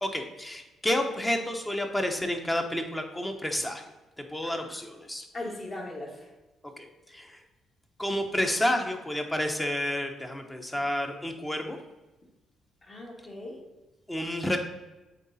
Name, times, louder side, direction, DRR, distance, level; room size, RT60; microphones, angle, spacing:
voice 1, 0.0-3.8 4.2-5.3 6.8-7.4 8.0-11.8 14.1-14.6, left 1 dB, 10° left, 4 dB, 0.9 m, -30 dB
voice 2, 4.4-4.8 5.3-6.3 12.8-13.7, left 1 dB, 40° left, -1 dB, 2.0 m, -39 dB
8.0 x 3.7 x 4.1 m, 1.1 s
cardioid pair, 90°, 0 cm